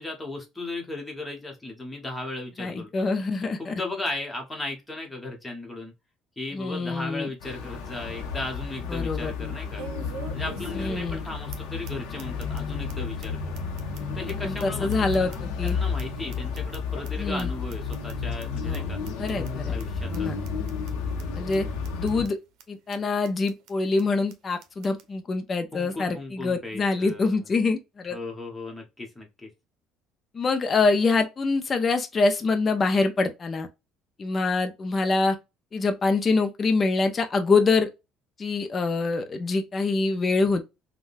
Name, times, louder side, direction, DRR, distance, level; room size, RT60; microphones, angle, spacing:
voice 1, 0.0-2.9 3.6-5.9 6.4-9.8 10.3-13.6 14.1-19.0 19.7-20.3 25.7-27.4 28.1-29.5, left 2 dB, 10° left, 1.1 m, -36 dB
voice 2, 2.6-3.8 6.5-7.3 8.9-9.3 10.7-11.2 14.3-15.8 17.2-17.5 18.6-18.8 19.2-19.7 20.1-20.4 21.3-21.7 21.9-22.4 22.7-28.2 30.3-33.7 34.2-35.4 35.7-37.9 38.4-40.7, left 3 dB, 30° left, 0.5 m, -25 dB
sound 1, 7.4-22.3, left 5 dB, 90° left, 0.8 m, -32 dB
sound 2, 7.4-7.5 8.0-8.1 9.8-11.2 11.5-11.6 11.9-12.0 12.2-12.6 12.9-13.0 13.2-13.3 13.6-15.7 16.0-17.1 17.4-17.5 17.7-18.1 18.4-18.5 18.7-18.8 19.1-19.5 19.8-19.9 20.1-20.2 20.5-20.9 21.2-21.3 21.5-21.6 21.8-22.3 22.6-22.7 22.9-23.0 23.2-23.7 24.0-24.1 24.3-24.4 24.6-25.1, right 6 dB, 75° right, 0.7 m, -44 dB
3.6 x 2.2 x 2.5 m
cardioid pair, 120°, 0 cm